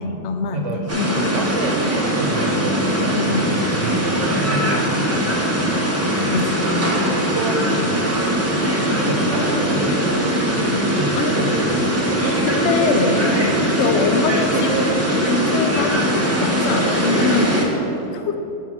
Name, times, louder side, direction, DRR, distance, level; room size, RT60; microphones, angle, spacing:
voice 1, 0.0-1.3 3.1-3.5 6.1-7.0 9.2-9.6 11.2-11.3 12.4-13.2 13.8-14.7 15.2-18.4, left 4 dB, 65° left, 7 dB, 0.7 m, -24 dB
voice 2, 0.5-5.5 6.1-6.4 6.9-8.1 8.8-10.1 10.5-12.0 13.4-13.7, right 2 dB, 55° right, 1 dB, 1.1 m, -29 dB
sound 1, 0.9-17.6, equal, 15° right, 0.6 m, -20 dB
5.6 x 5.5 x 6.2 m, 2.9 s
omnidirectional pair, 1.6 m